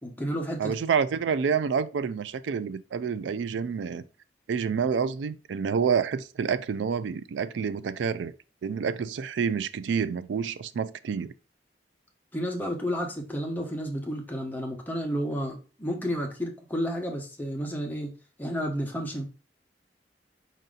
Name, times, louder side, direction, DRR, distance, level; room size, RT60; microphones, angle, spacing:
voice 1, 0.0-0.7 12.3-18.1 18.4-19.2, equal, 10° left, 0.9 m, -31 dB
voice 2, 0.6-4.0 4.5-8.3 8.6-11.3, right 6 dB, 90° right, 0.4 m, -28 dB
5.1 x 2.7 x 3.8 m
head